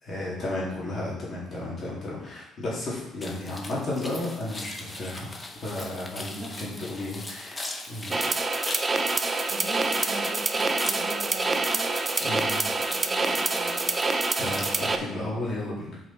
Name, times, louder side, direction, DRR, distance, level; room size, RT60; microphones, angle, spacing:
voice 1, 0.0-5.3 5.6-8.2 12.2-12.6 14.4-16.0, left 2 dB, 35° left, -6 dB, 3.1 m, -33 dB
sound 1, 3.2-14.7, left 2 dB, 15° left, 0.9 m, -40 dB
voice 2, 6.3-7.0 9.5-12.3 12.8-13.9, right 2 dB, 65° right, -1 dB, 1.9 m, -41 dB
sound 2, 8.1-15.0, right 3 dB, 20° right, 0.5 m, -26 dB
7.8 x 5.3 x 4.4 m, 0.90 s
cardioid pair, 160°, 0 cm